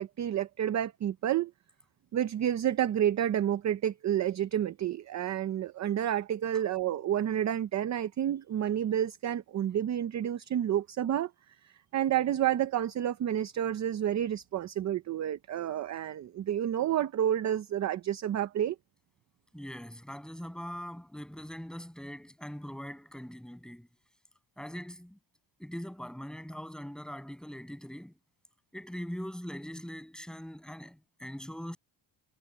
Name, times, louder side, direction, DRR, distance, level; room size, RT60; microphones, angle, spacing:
voice 1, 0.0-1.5 2.1-11.3 11.6-18.8, right 10 dB, 35° right, 0.6 m, -30 dB
voice 2, 19.5-23.9 24.6-25.2 25.6-28.1 28.7-31.8, equal, ahead, 7.2 m, -42 dB
cardioid pair, 165°, 49 cm